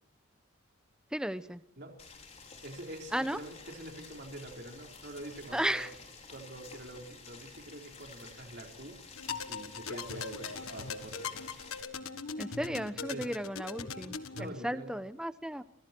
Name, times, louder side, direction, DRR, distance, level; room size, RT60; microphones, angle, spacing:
voice 1, 1.1-1.6 3.1-3.4 5.5-5.9 12.4-15.6, right 1 dB, 5° right, 12 dB, 0.9 m, -34 dB
Boiling, 2.0-11.8, left 4 dB, 30° left, 5.6 m, -52 dB
voice 2, 2.6-6.0 6.3-9.0 9.5-11.4 13.1-13.3 14.3-15.0, right 1 dB, 50° right, 1 dB, 4.4 m, -45 dB
sound 1, 9.1-14.5, left 5 dB, 80° left, 1.6 m, -40 dB
27.0 x 27.0 x 4.6 m, 0.78 s
head